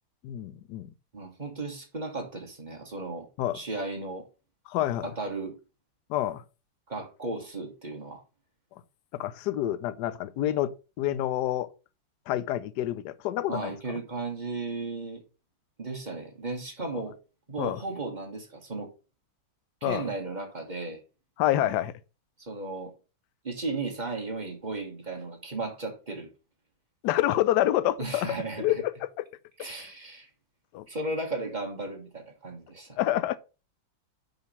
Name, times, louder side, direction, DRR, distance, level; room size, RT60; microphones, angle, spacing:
voice 1, 0.2-0.9 3.4-3.6 4.7-5.1 6.1-6.4 9.1-11.7 12.3-13.7 17.6-17.8 19.8-20.1 21.4-21.9 27.0-29.3 30.7-30.9 33.0-33.4, left 13 dB, 70° left, 1.1 m, -28 dB
voice 2, 1.1-3.3 3.5-4.3 5.0-5.5 6.9-8.2 13.5-15.2 15.8-17.2 17.5-18.9 19.8-21.0 22.4-22.9 23.4-26.3 28.0-28.8 29.6-30.3 30.9-33.0, right 3 dB, 25° right, 1.5 m, -35 dB
5.2 x 4.9 x 5.9 m
omnidirectional pair, 2.1 m